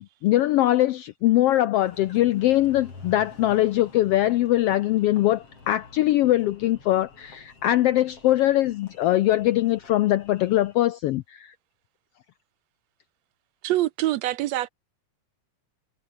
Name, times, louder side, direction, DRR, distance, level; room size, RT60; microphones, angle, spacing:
voice 1, 0.0-11.5, left 14 dB, 80° left, 1.4 m, -22 dB
Engine, 1.8-10.7, left 3 dB, 50° left, 6.8 m, -49 dB
voice 2, 13.6-14.7, right 15 dB, 75° right, 1.8 m, -25 dB
omnidirectional pair, 3.4 m